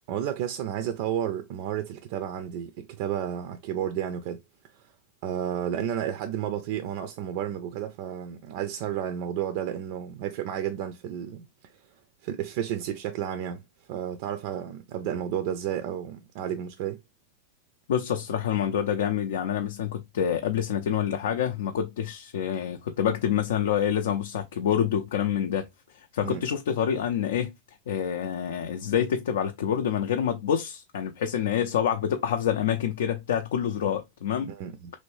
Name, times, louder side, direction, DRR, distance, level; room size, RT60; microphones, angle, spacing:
voice 1, 0.1-4.4 4.7-4.9 5.2-11.7 12.2-13.6 13.9-17.0 26.2-26.4 34.5-34.9, right 10 dB, 55° right, 0.4 m, -32 dB
voice 2, 17.9-25.7 26.1-27.5 27.9-34.5, left 9 dB, 80° left, 0.4 m, -27 dB
3.1 x 2.6 x 3.0 m
hypercardioid pair, 125°, 0 cm